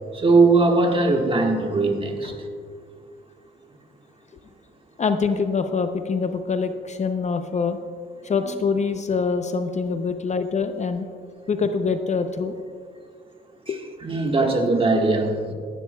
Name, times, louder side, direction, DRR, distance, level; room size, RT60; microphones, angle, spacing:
voice 1, 0.1-2.5 8.4-8.5 13.7-13.8 14.0-15.5, right 3 dB, 25° right, 3 dB, 1.5 m, -20 dB
voice 2, 5.0-7.8 8.2-11.1 11.5-12.5 13.7-13.8, left 5 dB, 35° left, 8 dB, 0.6 m, -24 dB
17.0 x 11.5 x 2.3 m, 2.1 s
cardioid pair, 90°, 20 cm